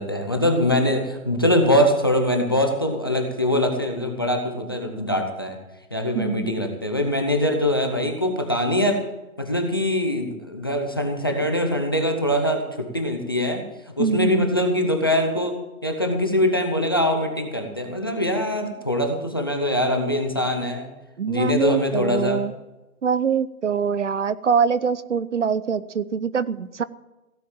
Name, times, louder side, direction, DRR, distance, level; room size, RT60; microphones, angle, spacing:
voice 1, 0.0-5.6 5.9-9.0 9.4-13.6 14.0-15.6 15.8-20.9 21.3-22.4, left 1 dB, 15° left, 5 dB, 0.7 m, -23 dB
voice 2, 6.1-6.5 14.0-14.6 21.2-22.5 23.0-26.8, right 6 dB, 55° right, 17 dB, 0.7 m, -24 dB
16.5 x 7.7 x 7.3 m, 1.0 s
hypercardioid pair, 170°, 43 cm